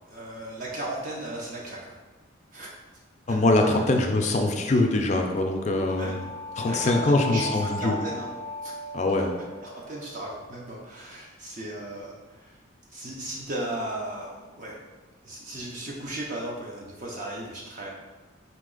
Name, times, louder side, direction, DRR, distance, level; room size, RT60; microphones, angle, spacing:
voice 1, 0.1-2.0 2.5-2.7 3.3-3.8 5.9-6.1 6.6-8.3 8.6-8.7 9.6-12.6 12.9-14.8 15.2-17.9, right 1 dB, 40° right, -3 dB, 0.5 m, -36 dB
voice 2, 3.3-6.2 6.6-8.0 8.9-9.4, left 2 dB, 35° left, 3 dB, 0.4 m, -23 dB
sound 1, 5.7-10.8, left 2 dB, 75° right, 0.9 m, -37 dB
4.1 x 2.8 x 3.8 m, 1.2 s
head